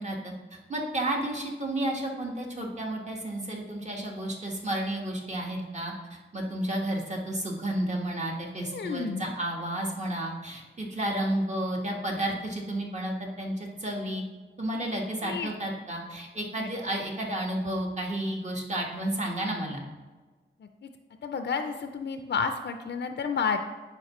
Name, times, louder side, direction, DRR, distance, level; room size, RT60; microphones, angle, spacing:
voice 1, 0.0-14.2 14.6-19.8, right 1 dB, 35° right, -1 dB, 1.3 m, -32 dB
voice 2, 8.6-9.3 14.9-15.5 16.6-16.7 20.8-20.9 21.2-23.6, left 5 dB, 60° left, 7 dB, 0.4 m, -31 dB
10.0 x 4.6 x 3.0 m, 1.3 s
wide cardioid pair, 95°, 20 cm